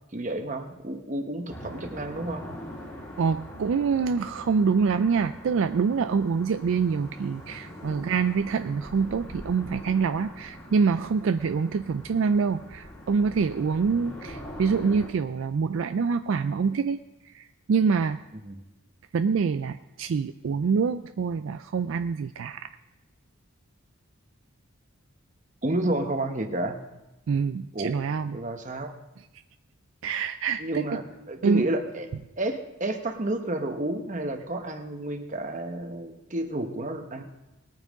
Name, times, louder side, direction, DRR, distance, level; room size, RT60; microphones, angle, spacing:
voice 1, 0.1-2.5 18.3-18.6 25.6-26.8 27.7-28.0 28.3-28.9 30.6-31.0 31.3-32.1 32.4-37.2, right 1 dB, 35° right, 5 dB, 1.0 m, -30 dB
sound 1, 1.5-15.1, equal, 10° left, 2.3 m, -43 dB
voice 2, 3.2-17.0 17.3-18.2 19.1-22.7 27.3-28.3 30.0-30.8 31.4-31.6, right 5 dB, 65° right, 10 dB, 0.3 m, -25 dB
20.0 x 9.0 x 3.6 m, 1.0 s
head